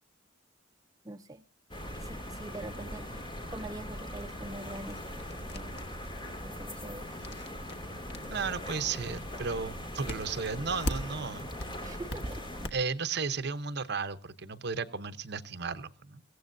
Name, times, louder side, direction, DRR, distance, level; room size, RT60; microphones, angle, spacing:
voice 1, 1.0-1.4 1.9-5.0 5.3-5.7 6.4-7.8 11.8-12.4, right 2 dB, 20° right, 5 dB, 0.6 m, -44 dB
sound 1, 1.7-12.7, equal, 25° left, 2.4 m, -40 dB
sound 2, 4.9-11.3 11.6-12.7, equal, 60° left, 1.3 m, -40 dB
voice 2, 8.3-11.5 12.7-16.2, right 5 dB, 60° right, 11 dB, 0.9 m, -34 dB
22.0 x 16.0 x 2.7 m, 0.41 s
head